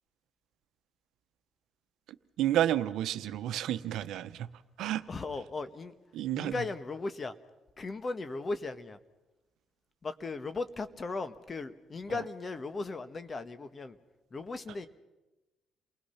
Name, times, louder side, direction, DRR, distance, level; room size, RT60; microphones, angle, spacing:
voice 1, 2.4-4.5 4.8-5.0 6.1-6.5, right 12 dB, 85° right, 11 dB, 0.9 m, -30 dB
voice 2, 5.1-5.9 6.3-7.3 7.8-9.0 10.0-14.0 14.3-14.9, left 3 dB, 35° left, 12 dB, 1.4 m, -37 dB
29.0 x 20.0 x 5.8 m, 1.1 s
cardioid pair, 90°, 0 cm